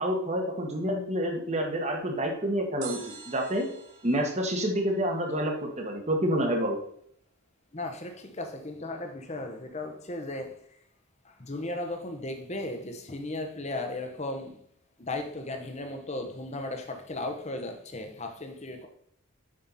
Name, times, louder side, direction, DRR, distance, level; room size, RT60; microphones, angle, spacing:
voice 1, 0.0-3.0 3.3-3.7 4.0-6.8, equal, 30° right, 2 dB, 1.5 m, -28 dB
sound 1, 2.8-5.9 6.1-6.2, right 5 dB, 55° right, 3.2 m, -47 dB
voice 2, 7.7-10.5 11.4-14.6 15.0-18.9, left 2 dB, 30° left, 5 dB, 1.0 m, -36 dB
7.5 x 5.7 x 4.2 m, 0.65 s
head